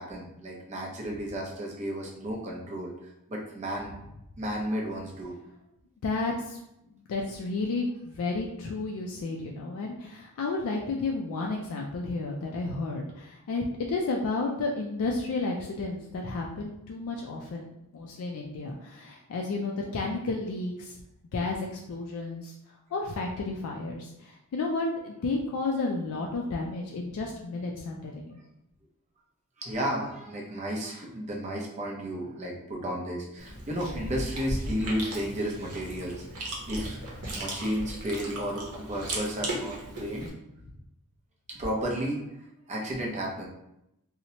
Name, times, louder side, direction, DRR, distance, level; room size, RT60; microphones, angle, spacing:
voice 1, 0.0-2.9 3.3-3.9 4.4-5.4 29.6-37.0 37.3-40.3 41.6-42.2 42.7-43.4, equal, 30° right, -1 dB, 0.6 m, -33 dB
voice 2, 6.0-6.6 7.1-13.6 13.9-17.7 17.9-21.0 21.3-22.5 22.9-28.3, left 3 dB, 70° left, 0 dB, 0.3 m, -32 dB
Chewing mastication, 33.4-40.3, right 1 dB, 85° right, 0.7 m, -36 dB
2.8 x 2.0 x 2.7 m, 0.84 s
head